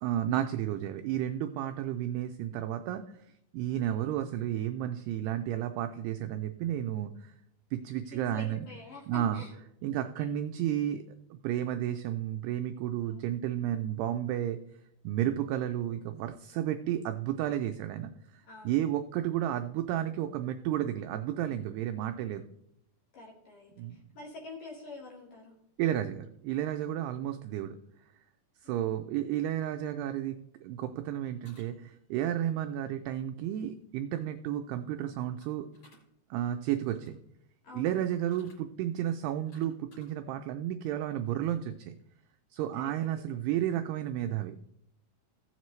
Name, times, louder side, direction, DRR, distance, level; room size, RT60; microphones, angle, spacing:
voice 1, 0.0-3.3 3.5-7.3 7.7-8.7 9.1-9.4 9.8-11.0 11.3-14.6 15.0-22.5 23.8-24.0 25.8-27.8 28.6-35.7 36.3-37.2 37.7-42.0 42.5-44.6, right 11 dB, 85° right, 7 dB, 2.3 m, -32 dB
voice 2, 8.1-9.5 10.0-10.3 13.0-13.3 18.5-18.7 23.1-25.6 28.6-28.9 37.6-38.1 42.7-43.2, left 3 dB, 60° left, -1 dB, 2.7 m, -47 dB
sound 1, 31.4-32.1 35.4-36.0 36.7-37.2 38.3-38.6 39.2-40.1, right 1 dB, 40° left, 4.2 m, -60 dB
16.0 x 7.4 x 3.1 m, 0.77 s
omnidirectional pair, 5.2 m